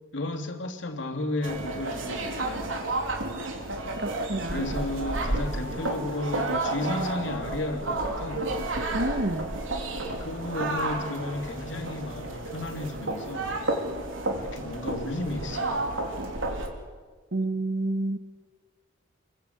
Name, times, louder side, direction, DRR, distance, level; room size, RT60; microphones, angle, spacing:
voice 1, 0.1-2.7 4.5-8.5 10.2-13.6 14.4-15.8, left 2 dB, 65° left, 3.1 m, -33 dB
sound 1, 1.4-16.7, right 2 dB, 80° right, 3.7 m, -31 dB
voice 2, 4.0-4.7 8.9-9.5 17.3-18.2, right 1 dB, 55° right, 1.8 m, -29 dB
27.0 x 23.0 x 8.5 m
head